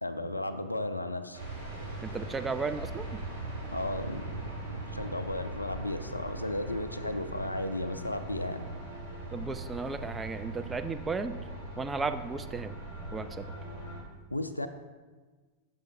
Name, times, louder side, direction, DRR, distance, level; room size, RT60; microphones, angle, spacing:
voice 1, 0.0-1.4 3.7-4.4 4.9-8.6 14.3-14.7, left 1 dB, 85° left, 10 dB, 0.3 m, -34 dB
sound 1, 1.3-14.0, right 2 dB, 75° right, 1.6 m, -40 dB
voice 2, 2.0-3.1 9.3-11.4 11.8-12.8 13.1-13.5, right 4 dB, 15° right, 9 dB, 0.3 m, -34 dB
6.8 x 6.4 x 2.5 m, 1.4 s
figure-of-eight pair, 90°, 0 cm